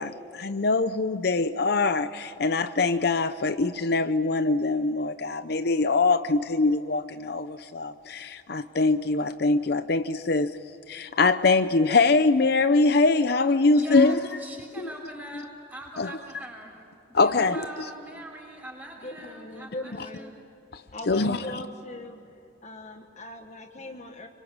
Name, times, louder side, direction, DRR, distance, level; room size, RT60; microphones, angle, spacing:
voice 1, 0.0-10.5 10.9-14.2 14.8-14.9 16.0-16.1 17.1-17.6 20.7-20.8 21.1-21.4, left 3 dB, 60° left, 0.7 m, -23 dB
voice 2, 13.7-16.8 17.1-20.3, right 1 dB, 10° right, 6.2 m, -42 dB
voice 3, 19.0-20.4 20.9-22.3 22.6-24.3, left 1 dB, 40° left, 1.3 m, -40 dB
25.0 x 25.0 x 8.9 m
head